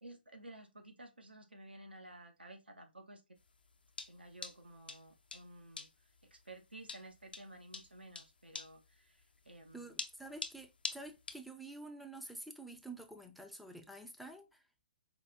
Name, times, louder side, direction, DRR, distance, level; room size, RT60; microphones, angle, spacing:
voice 1, 0.0-3.2 4.1-5.9 6.2-10.0, right 1 dB, 80° right, 0.7 m, -54 dB
sound 1, 3.4-11.5, left 4 dB, 70° left, 0.6 m, -45 dB
voice 2, 9.7-14.9, right 2 dB, ahead, 0.4 m, -49 dB
4.4 x 2.3 x 2.6 m
figure-of-eight pair, 130°, 5 cm